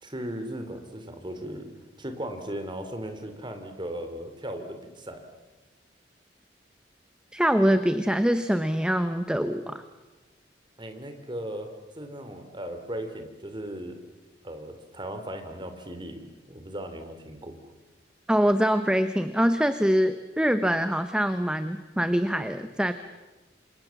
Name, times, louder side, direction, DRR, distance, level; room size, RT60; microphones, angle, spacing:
voice 1, 0.0-1.7 2.0-5.2 10.8-14.0 14.4-17.6, right 1 dB, 25° right, 7 dB, 3.2 m, -37 dB
voice 2, 7.3-9.8 18.3-22.9, equal, 5° right, 10 dB, 0.9 m, -24 dB
28.5 x 26.0 x 7.2 m, 1.1 s
head